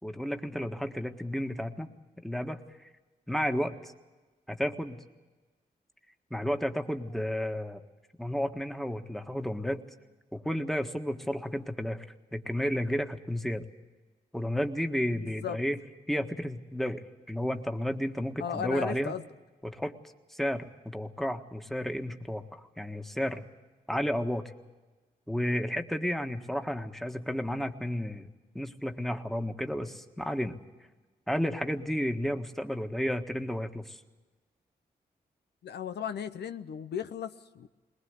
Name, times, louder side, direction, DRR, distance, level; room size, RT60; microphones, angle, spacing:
voice 1, 0.0-1.9 2.2-2.6 3.3-3.9 4.5-5.0 6.3-7.8 8.2-9.8 10.3-12.0 12.3-13.6 14.3-15.8 16.1-19.1 19.6-19.9 20.3-23.4 23.9-24.5 25.3-28.3 28.5-30.6 31.3-34.0, equal, ahead, 1.6 m, -32 dB
voice 2, 15.1-15.6 18.4-19.3 35.6-37.7, left 8 dB, 85° left, 0.7 m, -36 dB
21.0 x 19.5 x 8.2 m
cardioid pair, 55°, 17 cm